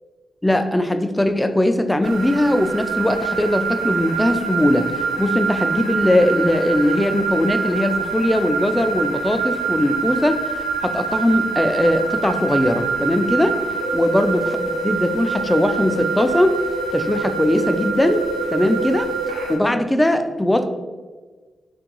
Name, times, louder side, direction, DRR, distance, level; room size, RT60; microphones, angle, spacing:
voice 1, 0.4-13.6 13.9-14.6 14.8-16.6 16.9-18.2 18.5-19.1 19.5-20.7, left 1 dB, 15° left, 8 dB, 0.3 m, -19 dB
sound 1, 2.0-19.6, right 5 dB, 90° right, 0.3 m, -25 dB
3.4 x 2.2 x 3.0 m, 1.3 s
supercardioid pair, 40°, 0 cm